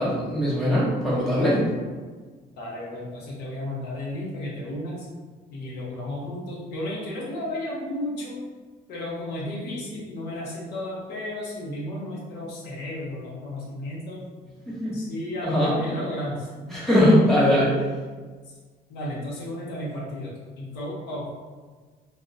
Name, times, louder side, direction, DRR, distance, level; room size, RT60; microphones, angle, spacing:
voice 1, 0.0-1.6 14.7-15.0 15.4-15.7 16.7-17.7, equal, ahead, -8 dB, 1.0 m, -21 dB
voice 2, 2.5-5.1 5.5-8.4 8.9-14.2 14.9-16.8 18.9-21.2, left 1 dB, 75° left, -5 dB, 0.8 m, -33 dB
2.8 x 2.0 x 2.5 m, 1.4 s
cardioid pair, 110°, 17 cm